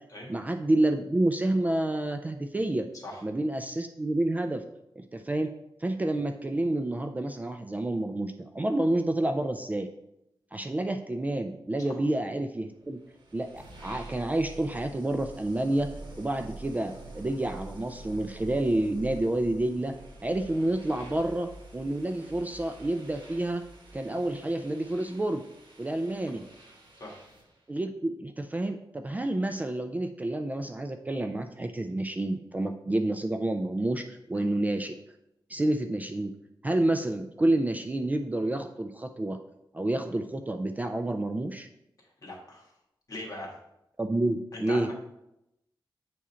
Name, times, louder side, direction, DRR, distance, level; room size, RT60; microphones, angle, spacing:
voice 1, 0.3-2.9 3.2-4.6 5.0-5.5 5.8-9.9 10.5-13.0 13.3-15.9 16.2-19.9 20.2-23.6 23.9-25.4 25.8-26.4 27.7-35.0 35.5-36.3 36.6-39.4 39.7-41.7 44.0-44.9, right 1 dB, 20° right, 5 dB, 0.4 m, -29 dB
sound 1, 12.9-27.6, right 2 dB, 65° right, 1.7 m, -47 dB
voice 2, 42.2-42.7 43.1-43.5 44.5-45.0, left 1 dB, 45° left, -1 dB, 1.7 m, -40 dB
8.2 x 3.7 x 4.3 m, 0.84 s
wide cardioid pair, 155°, 9 cm